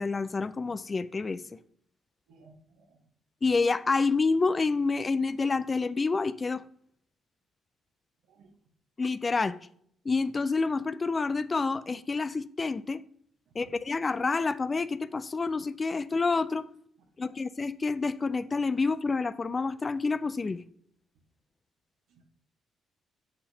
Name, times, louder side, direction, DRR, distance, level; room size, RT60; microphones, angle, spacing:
voice 1, 0.0-1.4 3.4-6.6 9.0-9.6 10.1-13.0 13.6-16.7 17.2-20.6, left 4 dB, 30° left, 0.3 m, -28 dB
voice 2, 2.3-3.1 8.3-8.5 13.5-13.6 17.2-17.3 22.1-22.2, right 3 dB, 85° right, 1.2 m, -59 dB
6.6 x 5.7 x 2.8 m
cardioid pair, 90°, 0 cm